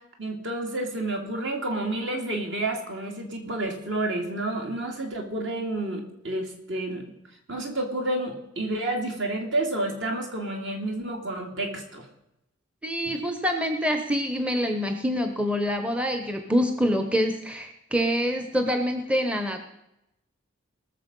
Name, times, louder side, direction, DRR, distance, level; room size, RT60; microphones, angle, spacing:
voice 1, 0.2-7.1 7.5-12.1, right 2 dB, 60° right, 2 dB, 2.5 m, -30 dB
voice 2, 12.8-19.6, equal, 5° right, 6 dB, 0.8 m, -26 dB
19.0 x 6.9 x 5.3 m, 0.85 s
head